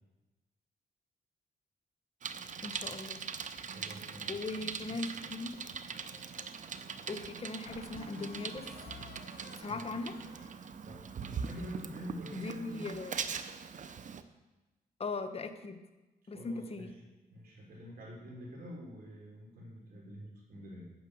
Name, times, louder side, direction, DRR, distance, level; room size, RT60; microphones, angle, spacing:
Bicycle, 2.2-14.2, right 6 dB, 50° right, 0.6 m, -42 dB
voice 1, 2.6-3.2 4.3-5.6 7.1-8.7 9.6-10.2 12.3-13.1 15.0-15.8 16.3-16.9, left 3 dB, 40° left, 8 dB, 0.9 m, -39 dB
voice 2, 3.6-4.7 9.7-9.8 10.8-12.9 16.3-17.0 17.3-20.9, equal, 70° right, -3 dB, 3.7 m, -47 dB
sound 1, 4.9-6.5 7.0-7.1 7.7-11.8, left 5 dB, 70° left, 1.0 m, -54 dB
9.1 x 6.7 x 6.3 m, 1.1 s
cardioid pair, 80°, 16 cm